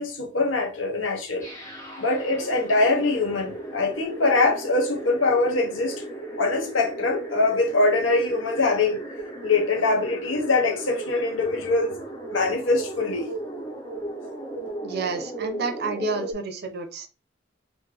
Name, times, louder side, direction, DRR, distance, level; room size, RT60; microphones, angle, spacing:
voice 1, 0.0-1.5 2.0-6.0 6.4-9.0 9.4-12.0 12.3-13.3, left 3 dB, 85° left, 1.0 m, -23 dB
sound 1, 1.4-16.3, right 1 dB, 15° left, 1.2 m, -36 dB
voice 2, 14.8-17.1, right 3 dB, 55° right, 0.6 m, -30 dB
3.8 x 2.0 x 3.4 m
head